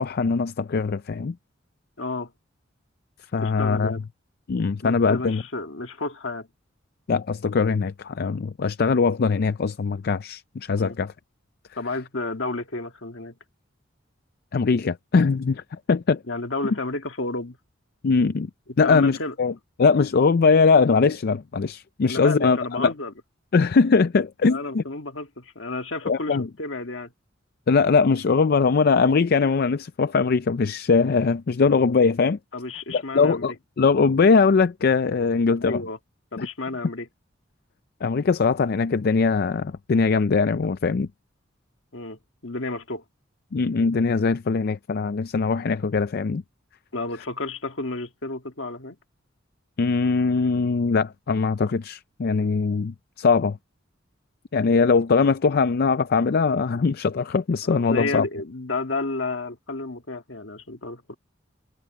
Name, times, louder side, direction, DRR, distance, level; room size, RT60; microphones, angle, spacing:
voice 1, 0.0-1.4 3.3-3.9 4.5-5.4 7.1-11.1 14.5-16.2 18.0-18.5 18.8-19.5 19.8-22.9 23.5-24.8 26.1-26.5 27.7-32.4 32.9-35.8 36.4-36.5 38.0-41.1 43.5-46.4 49.8-53.6 54.5-58.2, left 4 dB, 55° left, 0.4 m, -21 dB
voice 2, 2.0-2.3 3.4-4.0 4.8-6.5 10.8-11.0 11.8-13.3 16.3-17.6 18.7-19.3 22.1-23.1 24.4-27.1 32.5-33.5 35.6-36.0 36.3-37.1 41.9-43.0 46.9-49.0 57.6-61.1, left 2 dB, 70° left, 1.9 m, -31 dB
head